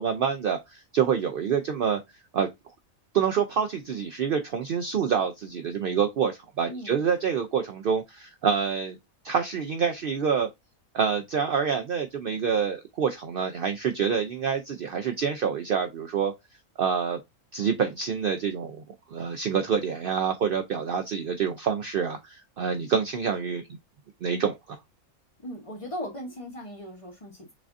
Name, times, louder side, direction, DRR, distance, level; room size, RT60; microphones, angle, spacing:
voice 1, 0.0-2.0 2.3-2.5 3.1-9.0 9.2-10.5 10.9-16.3 16.8-17.2 17.5-18.8 19.1-23.6 24.2-24.8, right 7 dB, 80° right, 0.5 m, -27 dB
voice 2, 6.6-7.0 25.4-27.5, equal, 25° left, 0.8 m, -38 dB
6.4 x 2.5 x 2.5 m
omnidirectional pair, 1.5 m